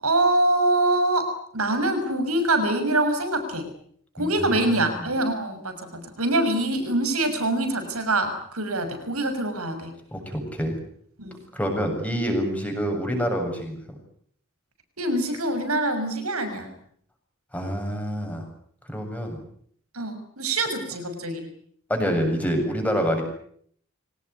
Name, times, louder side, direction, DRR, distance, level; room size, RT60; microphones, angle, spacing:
voice 1, 0.0-3.7 4.1-9.9 11.2-11.5 15.0-16.7 19.9-21.5, right 2 dB, 85° right, 8 dB, 6.4 m, -24 dB
voice 2, 4.2-5.1 10.1-10.8 11.5-13.8 17.5-18.5 18.9-19.4 21.9-23.2, equal, 5° left, 3 dB, 7.4 m, -27 dB
25.0 x 18.5 x 9.8 m, 0.63 s
head